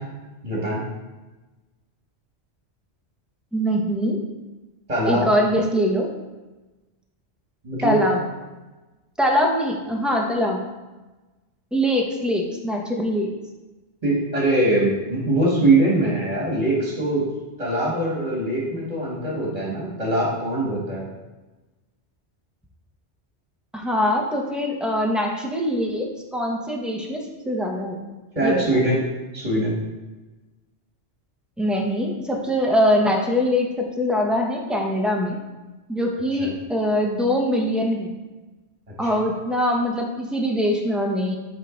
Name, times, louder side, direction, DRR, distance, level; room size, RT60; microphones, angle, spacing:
voice 1, 0.4-0.8 4.9-5.3 7.6-8.0 14.0-17.2 17.6-21.1 28.3-29.0 29.3-29.8 36.4-36.5, right 2 dB, 35° right, -5 dB, 1.7 m, -22 dB
voice 2, 3.5-4.2 5.1-6.1 7.8-8.2 9.2-10.6 11.7-13.3 23.7-28.0 28.4-28.7 31.6-35.4 35.9-38.1 39.0-41.4, equal, ahead, 0 dB, 0.7 m, -23 dB
8.9 x 3.7 x 3.9 m, 1.1 s
omnidirectional pair, 1.2 m